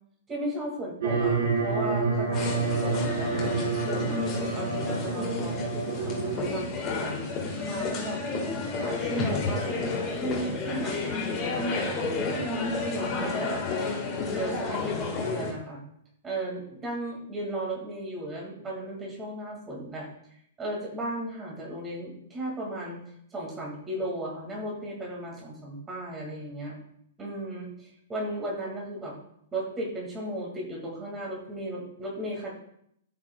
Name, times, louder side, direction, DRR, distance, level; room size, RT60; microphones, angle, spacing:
voice 1, 0.3-4.2 4.5-7.2 7.6-8.2 8.8-13.6 14.3-15.8 16.2-20.1 20.6-23.0 23.3-26.7 27.2-29.1 29.5-32.5, right 1 dB, 10° right, -2 dB, 2.0 m, -35 dB
sound 1, 1.0-6.6, right 4 dB, 55° right, 3.6 m, -28 dB
sound 2, 2.3-15.5, left 3 dB, 20° left, 1.6 m, -31 dB
14.5 x 5.8 x 2.3 m, 0.72 s
hypercardioid pair, 170°, 0 cm